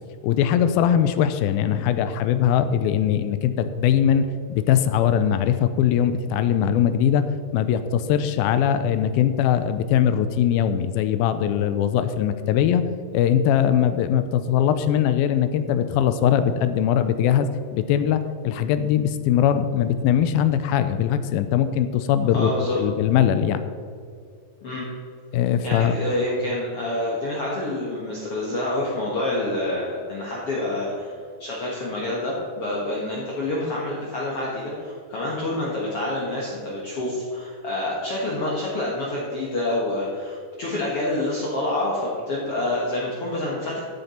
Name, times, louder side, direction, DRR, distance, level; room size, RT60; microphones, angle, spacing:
voice 1, 0.2-12.8 13.1-22.5 22.8-23.6 25.3-26.0, left 9 dB, 90° left, 11 dB, 2.4 m, -21 dB
voice 2, 22.3-22.8 24.6-24.9 25.6-31.1 31.4-43.8, left 1 dB, 55° left, -5 dB, 1.8 m, -27 dB
14.5 x 6.7 x 4.3 m, 2.2 s
omnidirectional pair, 4.2 m